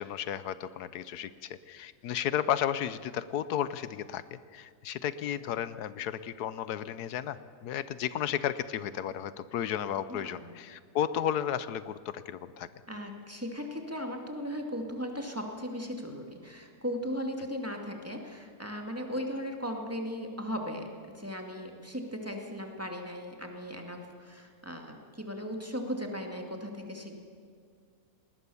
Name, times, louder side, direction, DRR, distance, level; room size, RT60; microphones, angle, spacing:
voice 1, 0.0-12.7, left 10 dB, 85° left, 14 dB, 1.3 m, -33 dB
voice 2, 10.1-10.5 12.9-27.2, equal, 10° right, 2 dB, 2.2 m, -37 dB
19.5 x 19.5 x 7.1 m, 2.2 s
omnidirectional pair, 1.6 m